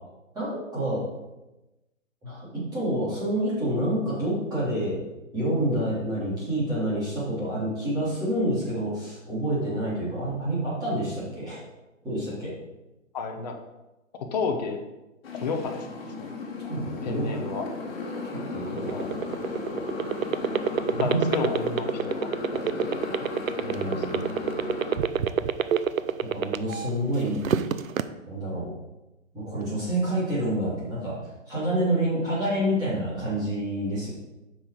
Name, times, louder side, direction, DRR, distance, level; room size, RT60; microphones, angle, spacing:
voice 1, 0.3-1.0 2.2-2.5 2.7-4.9 5.3-11.6 12.0-12.5 16.7-17.3 18.5-19.1 20.9-21.2 23.6-24.2 26.3-27.4 28.3-28.7 29.3-31.1 31.5-34.1, right 1 dB, 10° right, -9 dB, 3.1 m, -28 dB
voice 2, 13.1-13.6 14.1-14.8 15.4-16.3 17.0-17.7 18.9-19.1 21.0-23.1 23.8-24.3, left 4 dB, 30° left, 3 dB, 0.8 m, -32 dB
Motorcycle, 15.2-25.0, left 3 dB, 50° left, 2.2 m, -35 dB
sound 1, 18.7-26.9 27.3-28.0, right 8 dB, 85° right, 0.7 m, -25 dB
8.1 x 6.1 x 4.9 m, 1.0 s
hypercardioid pair, 165°, 40 cm